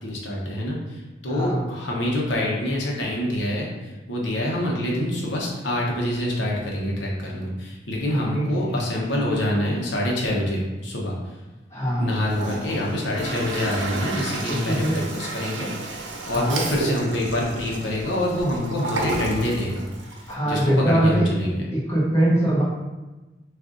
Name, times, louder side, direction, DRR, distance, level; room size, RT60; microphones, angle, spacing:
voice 1, 0.0-11.2 12.0-16.0 16.3-19.9 20.5-21.7, left 1 dB, 85° left, -3 dB, 1.0 m, -26 dB
voice 2, 1.3-1.6 8.1-8.6 11.7-12.0 14.5-15.0 16.2-16.6 20.3-21.2 21.7-22.6, right 1 dB, 15° left, -9 dB, 1.3 m, -22 dB
Toilet flush, 12.1-20.3, right 2 dB, 85° right, 0.7 m, -32 dB
6.0 x 2.6 x 2.6 m, 1.1 s
head